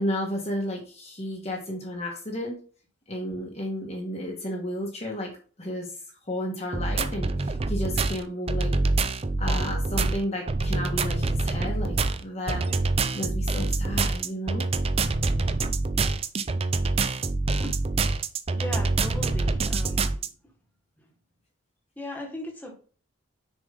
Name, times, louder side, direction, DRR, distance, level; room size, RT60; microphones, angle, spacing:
voice 1, 0.0-2.6 3.1-5.3 5.6-8.7 9.4-12.7 13.1-14.7, left 1 dB, 30° left, -1 dB, 1.4 m, -32 dB
sound 1, 6.7-20.3, right 3 dB, 30° right, 0.4 m, -26 dB
voice 2, 18.6-20.2 21.0-21.1 22.0-22.7, equal, 10° left, 0 dB, 1.7 m, -37 dB
6.5 x 5.1 x 3.8 m, 0.39 s
head